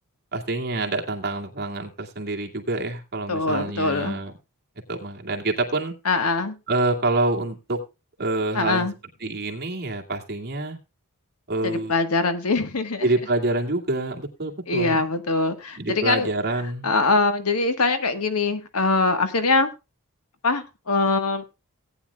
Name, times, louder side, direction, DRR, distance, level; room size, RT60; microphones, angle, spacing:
voice 1, 0.3-4.3 4.9-5.9 6.7-7.8 8.2-8.9 9.2-10.8 11.5-11.9 13.0-15.0 15.8-16.9, right 2 dB, 45° right, 1 dB, 2.2 m, -26 dB
voice 2, 3.3-4.2 6.0-6.5 8.5-8.9 11.6-13.1 14.7-16.3 16.8-19.7 20.4-21.4, left 3 dB, 75° left, 8 dB, 1.5 m, -23 dB
18.0 x 9.7 x 2.3 m, 0.26 s
head